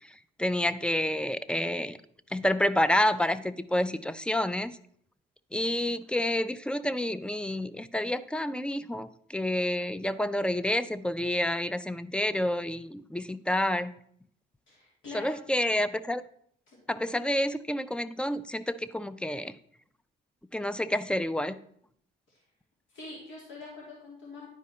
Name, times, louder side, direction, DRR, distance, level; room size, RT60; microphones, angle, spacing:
voice 1, 0.4-2.0 2.3-4.8 5.5-13.9 15.1-16.2 16.9-19.6 20.5-21.6, left 1 dB, 5° left, 14 dB, 0.4 m, -29 dB
voice 2, 14.7-15.4 16.7-16.8 22.3-22.4 22.9-24.5, left 3 dB, 75° left, -4 dB, 2.8 m, -44 dB
10.5 x 4.9 x 4.2 m, 0.65 s
cardioid pair, 90°, 20 cm